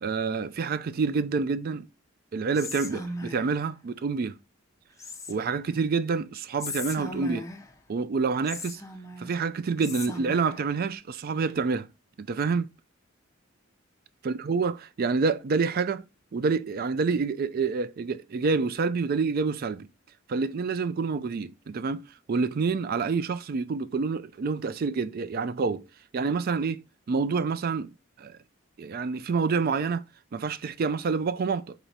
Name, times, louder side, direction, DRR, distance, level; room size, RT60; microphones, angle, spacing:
voice 1, 0.0-1.9 2.3-4.4 5.3-7.5 7.9-8.8 9.2-11.9 12.2-12.7 14.2-16.0 16.3-19.9 20.3-22.0 22.3-25.8 26.1-26.8 27.1-27.9 28.2-28.4 28.8-30.0 30.3-31.7, right 4 dB, 45° right, 0.3 m, -27 dB
Whispering, 2.5-3.6 5.0-5.7 6.6-7.8 8.5-9.4 9.8-10.7, left 2 dB, 15° left, 0.5 m, -38 dB
4.5 x 4.0 x 2.7 m
head